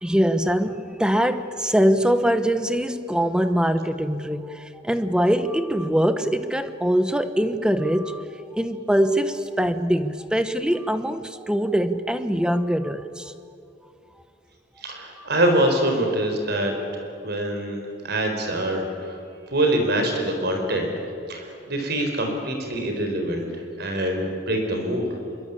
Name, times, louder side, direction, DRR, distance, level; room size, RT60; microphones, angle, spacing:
voice 1, 0.0-13.3 15.2-15.3, equal, 5° right, 10 dB, 1.1 m, -23 dB
voice 2, 14.8-19.1 19.5-20.9 21.3-23.4 23.8-25.1, right 1 dB, 60° right, 3 dB, 4.8 m, -24 dB
25.5 x 23.0 x 8.6 m, 2.6 s
head